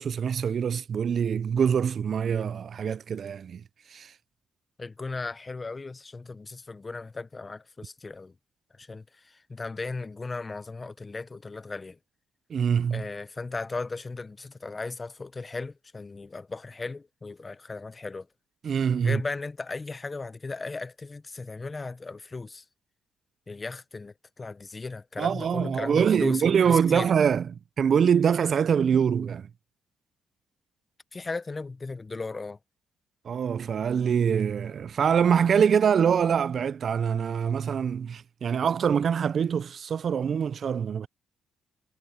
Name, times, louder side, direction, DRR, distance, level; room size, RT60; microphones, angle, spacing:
voice 1, 0.0-3.6 3.9-4.1 12.5-13.0 18.6-19.2 25.2-27.5 27.8-29.5 33.3-41.1, right 7 dB, 50° right, 0.3 m, -24 dB
voice 2, 4.8-8.3 8.7-12.0 12.9-18.3 19.0-22.6 23.5-27.1 31.1-32.6, left 3 dB, 25° left, 0.7 m, -36 dB
cardioid pair, 90°, 0 cm